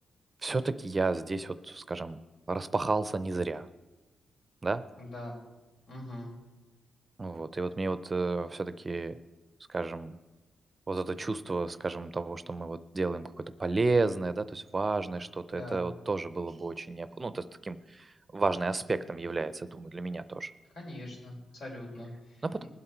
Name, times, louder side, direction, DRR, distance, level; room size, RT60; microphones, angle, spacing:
voice 1, 0.4-2.2 2.5-3.7 4.6-4.8 7.2-9.2 9.7-10.2 10.9-20.5 22.4-22.6, right 3 dB, 25° right, 14 dB, 0.5 m, -32 dB
voice 2, 5.0-5.4 5.8-6.3 15.5-15.9 20.7-22.7, left 1 dB, 80° left, -2 dB, 4.7 m, -42 dB
20.5 x 7.9 x 4.5 m, 1.2 s
cardioid pair, 115°, 0 cm